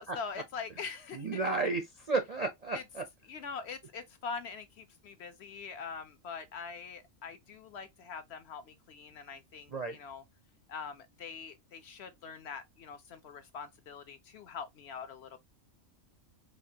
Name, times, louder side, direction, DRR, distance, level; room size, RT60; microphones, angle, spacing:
voice 1, 0.0-1.4 2.7-2.8 3.3-10.2 10.7-15.4, left 5 dB, 65° left, 0.7 m, -43 dB
voice 2, 1.1-3.0 9.7-10.0, right 3 dB, 55° right, 0.4 m, -33 dB
5.0 x 2.4 x 2.7 m
omnidirectional pair, 1.4 m